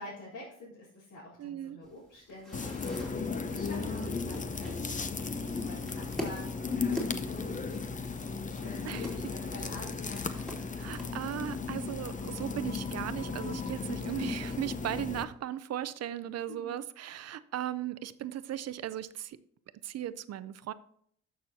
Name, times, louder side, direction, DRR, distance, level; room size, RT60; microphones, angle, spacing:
voice 1, 0.0-10.6 16.5-16.8, left 1 dB, 75° left, 3.7 m, -48 dB
voice 2, 1.4-1.8 3.8-4.1 8.8-9.1 10.3-10.4 10.7-19.4 19.8-20.7, right 11 dB, 55° right, 0.5 m, -37 dB
sound 1, 1.8-11.1, equal, ahead, 2.8 m, -45 dB
sound 2, 2.5-15.2, left 4 dB, 25° left, 0.7 m, -35 dB
13.0 x 6.2 x 2.8 m
cardioid pair, 90°, 30 cm